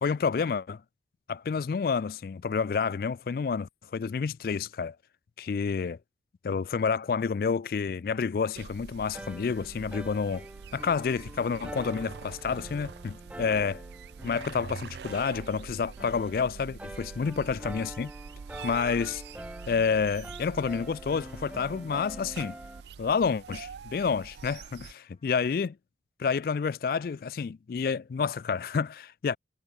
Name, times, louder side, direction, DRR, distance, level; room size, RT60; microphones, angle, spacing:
voice 1, 0.0-0.8 1.3-5.0 5.4-6.0 6.4-10.4 10.7-13.8 14.2-18.1 18.6-19.2 19.7-22.6 23.0-25.7 26.2-29.4, left 5 dB, 55° left, 0.3 m, -29 dB
sound 1, 8.5-24.9, right 6 dB, 70° right, 0.4 m, -45 dB
sound 2, 9.1-22.8, right 1 dB, 5° right, 0.9 m, -45 dB
Trumpet, 17.8-25.7, left 4 dB, 30° left, 3.1 m, -67 dB
head